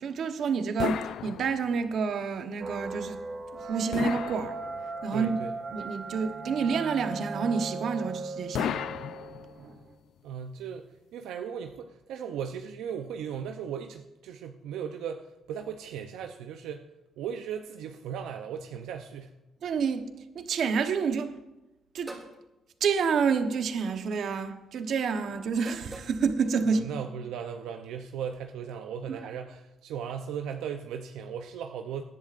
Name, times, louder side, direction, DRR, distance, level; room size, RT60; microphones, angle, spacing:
voice 1, 0.0-3.2 3.5-4.6 5.0-5.4 5.7-8.8 9.6-9.8 19.6-20.1 20.3-21.4 21.9-22.2 22.8-26.9 29.1-29.3, right 5 dB, 65° right, 1.0 m, -29 dB
sound 1, 0.8-2.0 3.9-5.2 8.5-9.8, left 9 dB, 75° left, 0.4 m, -34 dB
sound 2, 2.6-9.9, right 3 dB, 45° right, 1.9 m, -38 dB
voice 2, 5.1-5.5 10.2-16.9 17.2-19.3 26.6-32.0, right 8 dB, 90° right, 0.6 m, -37 dB
sound 3, 22.1-22.4 23.6-23.9 25.6-26.2, right 2 dB, 20° right, 3.4 m, -44 dB
18.5 x 11.0 x 2.5 m
cardioid pair, 90°, 0 cm